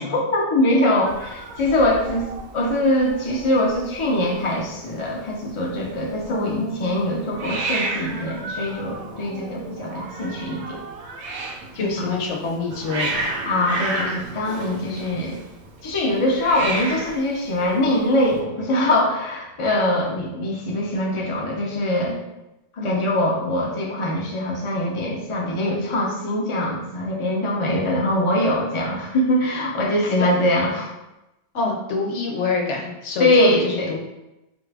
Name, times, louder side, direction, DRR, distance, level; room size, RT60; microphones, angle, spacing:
voice 1, 0.0-2.3 2.5-10.8 11.8-12.1 13.4-15.4 15.8-22.2 22.8-30.9 33.2-34.0, left 1 dB, 35° left, -2 dB, 0.6 m, -22 dB
Hiss, 1.1-18.4, right 2 dB, 75° right, 0.9 m, -33 dB
voice 2, 6.3-7.0 11.7-13.3 22.8-22.9 30.2-30.3 31.5-34.0, left 4 dB, 85° left, 0 dB, 1.0 m, -26 dB
3.9 x 2.4 x 3.3 m, 0.95 s
omnidirectional pair, 1.2 m